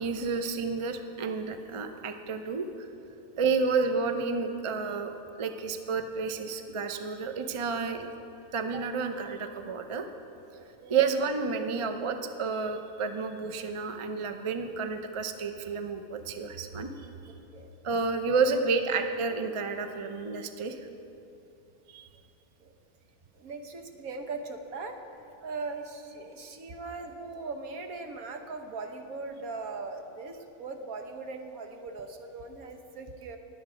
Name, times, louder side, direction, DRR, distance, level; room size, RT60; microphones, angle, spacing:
voice 1, 0.0-2.7 3.4-5.1 5.4-8.1 8.5-10.1 10.9-16.9 17.8-20.8 21.9-22.1, right 4 dB, 45° right, 7 dB, 0.4 m, -30 dB
voice 2, 10.5-11.0 16.9-17.7 22.6-22.7 23.3-33.4, right 3 dB, 70° right, 5 dB, 1.4 m, -40 dB
20.5 x 8.0 x 5.0 m, 2.8 s
omnidirectional pair, 1.6 m